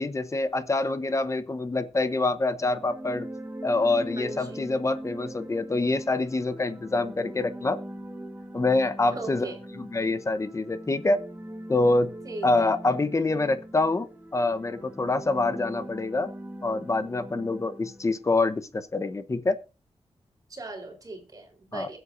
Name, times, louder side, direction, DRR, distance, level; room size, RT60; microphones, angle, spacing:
voice 1, 0.0-3.3 3.6-7.8 8.5-9.5 9.7-11.2 11.7-12.1 12.4-14.1 14.3-16.3 16.6-19.6 21.7-21.9, left 2 dB, 30° left, 12 dB, 0.9 m, -26 dB
sound 1, 2.6-18.3, right 1 dB, 15° right, 1.6 m, -41 dB
voice 2, 4.2-4.6 9.0-9.6 12.2-12.7 20.5-22.0, right 2 dB, 35° right, 2 dB, 3.8 m, -38 dB
22.0 x 8.0 x 2.6 m, 0.31 s
wide cardioid pair, 150°, 11 cm